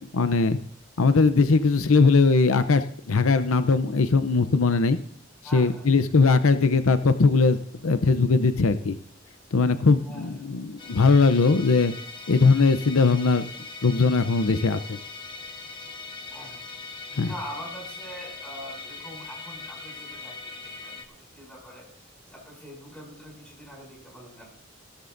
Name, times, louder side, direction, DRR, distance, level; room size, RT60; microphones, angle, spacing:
voice 1, 0.1-0.6 1.0-5.0 5.5-7.6 7.8-9.0 9.5-11.9 12.3-13.5 13.8-15.0 17.1-17.3, left 4 dB, 90° left, 11 dB, 0.7 m, -20 dB
voice 2, 5.4-6.0 10.0-10.5 16.3-16.7 17.2-24.4, equal, 5° left, -2 dB, 6.2 m, -43 dB
Musical instrument, 10.8-21.0, left 4 dB, 20° left, 1.0 m, -41 dB
17.0 x 13.0 x 2.6 m, 0.62 s
head